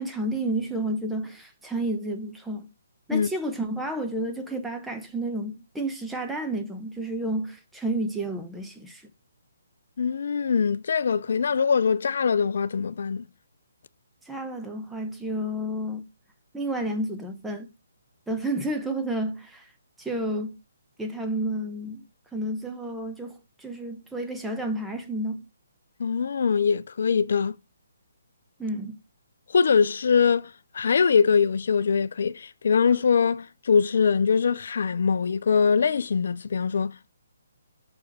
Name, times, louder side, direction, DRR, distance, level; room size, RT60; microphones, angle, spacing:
voice 1, 0.0-2.7 3.1-9.1 14.3-16.1 16.5-17.7 18.3-19.7 20.0-20.6 21.0-22.0 22.3-25.4 28.6-29.0, right 1 dB, 5° right, 0.8 m, -31 dB
voice 2, 10.0-13.2 26.0-27.6 29.5-37.1, left 6 dB, 65° left, 0.4 m, -23 dB
6.2 x 4.7 x 4.7 m
hypercardioid pair, 155°, 0 cm